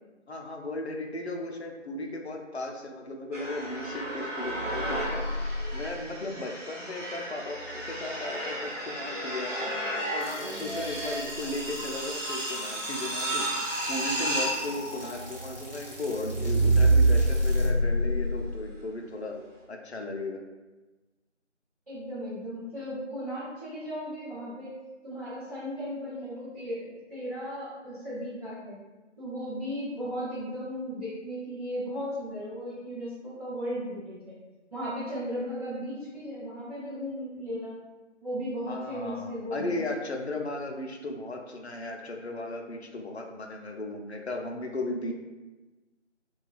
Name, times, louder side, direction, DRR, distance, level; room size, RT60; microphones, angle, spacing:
voice 1, 0.3-9.7 10.1-13.5 13.9-19.4 19.7-20.4 38.7-45.1, left 2 dB, 60° left, 2 dB, 0.4 m, -36 dB
sound 1, 3.3-18.8, right 1 dB, 90° right, 0.9 m, -29 dB
sound 2, 10.2-17.7, right 1 dB, 50° right, 0.6 m, -46 dB
voice 2, 21.9-24.8 25.0-28.8 29.2-34.3 34.7-37.8 38.2-39.8, equal, 30° right, -14 dB, 1.0 m, -36 dB
3.0 x 2.3 x 2.4 m, 1.2 s
figure-of-eight pair, 175°, 37 cm